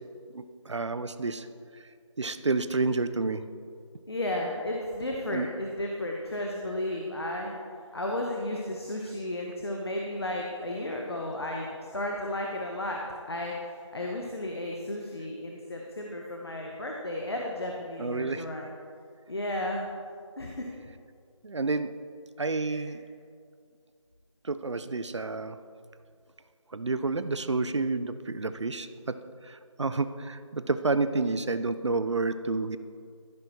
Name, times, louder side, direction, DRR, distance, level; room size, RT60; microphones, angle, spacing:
voice 1, 0.3-1.5 2.2-3.5 5.3-5.5 18.0-18.4 21.4-21.9 22.4-23.0 24.4-25.6 26.7-29.2 29.4-32.8, right 3 dB, 60° right, 12 dB, 0.5 m, -29 dB
voice 2, 4.1-7.5 7.9-11.7 11.9-13.0 13.3-18.7 19.3-19.9 20.4-20.7 22.6-22.9, left 1 dB, 50° left, 0 dB, 0.9 m, -33 dB
14.0 x 5.9 x 2.9 m, 2.3 s
figure-of-eight pair, 165°, 17 cm